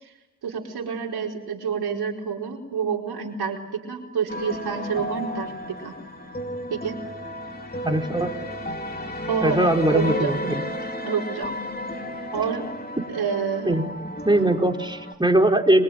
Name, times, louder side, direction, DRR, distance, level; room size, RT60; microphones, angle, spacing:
voice 1, 0.4-5.5 5.8-5.9 6.7-6.9 9.3-10.3 11.0-11.5 12.3-12.7 13.1-13.8, right 6 dB, 75° right, 0 dB, 4.8 m, -28 dB
sound 1, 4.3-15.1, left 1 dB, 25° left, 4.5 m, -33 dB
voice 2, 7.8-8.3 9.4-10.6 13.6-13.9 14.2-15.8, right 1 dB, 10° right, 3 dB, 4.6 m, -21 dB
25.5 x 22.5 x 9.4 m, 0.99 s
supercardioid pair, 45°, 39 cm